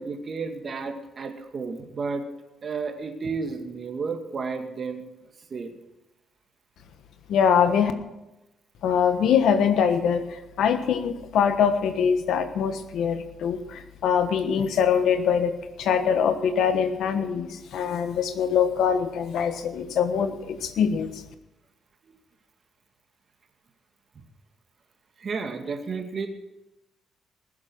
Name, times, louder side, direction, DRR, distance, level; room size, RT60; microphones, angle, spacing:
voice 1, 0.0-2.3 2.6-5.0 5.5-5.7 25.2-26.3, right 4 dB, 45° right, 5 dB, 2.0 m, -32 dB
voice 2, 7.3-7.9 8.8-10.2 10.6-21.1, left 7 dB, 75° left, 9 dB, 1.3 m, -23 dB
20.0 x 7.4 x 6.3 m, 0.97 s
cardioid pair, 90°, 0 cm